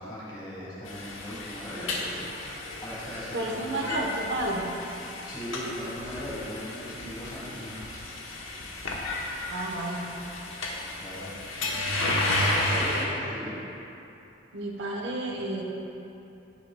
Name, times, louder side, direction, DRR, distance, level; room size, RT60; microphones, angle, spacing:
voice 1, 0.0-2.3 2.8-4.1 5.2-7.8 11.0-11.3 12.4-13.5, equal, 20° left, -7 dB, 2.0 m, -38 dB
sound 1, 0.8-13.1, left 1 dB, 75° left, 1.1 m, -32 dB
voice 2, 3.3-4.7 9.5-10.0 14.5-15.6, right 1 dB, 60° right, -2 dB, 1.0 m, -31 dB
14.5 x 6.8 x 2.3 m, 2.9 s
head